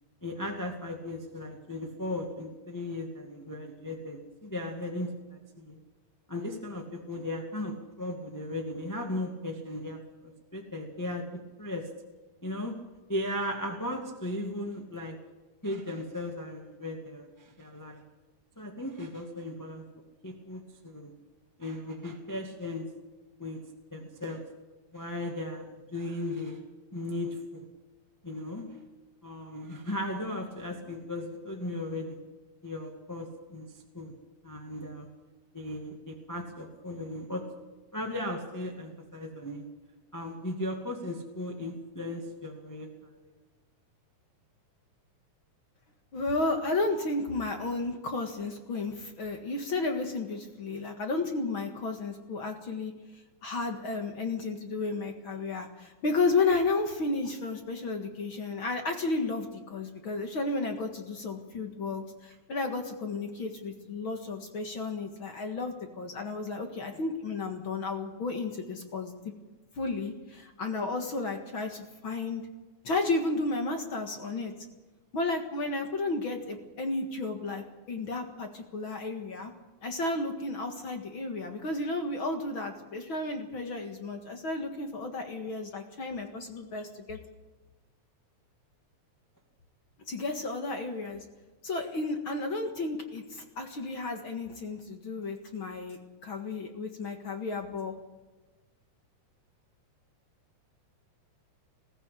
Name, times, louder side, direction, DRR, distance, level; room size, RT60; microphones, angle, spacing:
voice 1, 0.2-5.8 6.3-11.9 12.4-12.7 13.1-15.2 15.6-18.0 18.6-19.8 20.2-21.1 21.6-22.9 23.4-24.4 24.9-26.6 26.9-27.6 28.2-28.8 29.2-32.2 32.6-34.1 34.4-35.1 35.5-37.4 37.9-39.7 40.1-42.9 43.2-43.3, left 1 dB, 5° left, 1 dB, 1.6 m, -37 dB
voice 2, 46.1-52.9 53.4-69.1 69.8-72.4 72.8-74.5 75.1-79.5 79.8-87.2 90.1-91.2 91.6-97.9, left 3 dB, 45° left, 5 dB, 2.2 m, -32 dB
21.0 x 15.0 x 8.4 m, 1.2 s
omnidirectional pair, 3.6 m